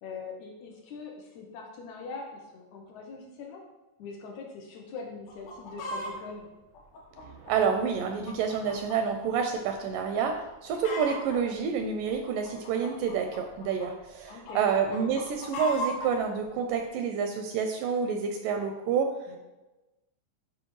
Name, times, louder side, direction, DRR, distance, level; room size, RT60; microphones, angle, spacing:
voice 1, 0.0-3.6 4.0-6.5 14.3-14.6 19.3-19.4, left 4 dB, 80° left, 1 dB, 1.7 m, -42 dB
Chicken rooster, 5.3-6.1 6.7-9.0 9.3-9.4 10.0-10.2 10.5-11.4 12.1-13.9 14.3-16.1 16.8-16.9, left 1 dB, 65° left, 2.0 m, -37 dB
voice 2, 7.2-19.1, right 6 dB, 80° right, 5 dB, 2.0 m, -28 dB
8.8 x 4.7 x 3.1 m, 1.1 s
omnidirectional pair, 4.2 m